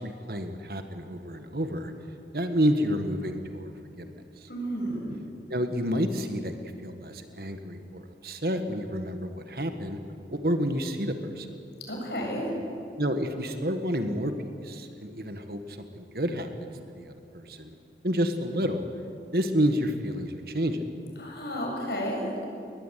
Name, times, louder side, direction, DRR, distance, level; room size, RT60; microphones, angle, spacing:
voice 1, 0.0-1.9 2.3-4.1 4.4-4.5 5.5-10.0 10.3-11.5 13.0-14.3 14.6-17.7 18.0-18.9 19.3-20.8, equal, 55° right, 7 dB, 1.7 m, -29 dB
voice 2, 4.5-5.2 11.9-12.5 21.2-22.4, equal, 65° left, -1 dB, 7.5 m, -32 dB
22.0 x 20.0 x 9.3 m, 2.6 s
head